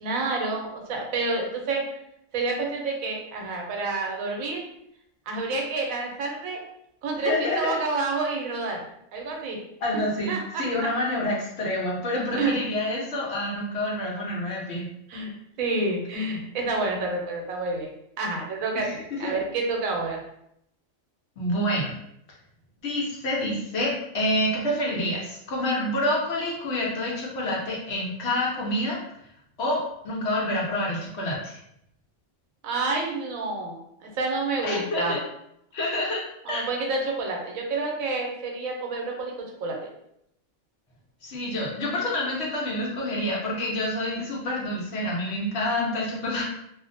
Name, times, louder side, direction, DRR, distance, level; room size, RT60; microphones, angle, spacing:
voice 1, 0.0-1.8 2.3-4.7 5.3-6.6 7.0-8.8 9.1-9.6 10.3-10.9 12.3-12.6 15.1-15.3 15.6-17.9 18.2-20.2 32.6-35.2 36.4-39.8, right 3 dB, 90° right, 1 dB, 1.0 m, -29 dB
voice 2, 7.2-7.8 9.8-14.8 18.8-18.9 19.2-19.3 21.4-21.9 22.8-29.0 29.6-31.6 34.6-35.2 35.7-36.2 36.5-36.7 41.2-46.4, left 1 dB, 60° left, -4 dB, 0.8 m, -27 dB
2.4 x 2.1 x 2.6 m, 0.76 s
omnidirectional pair, 1.4 m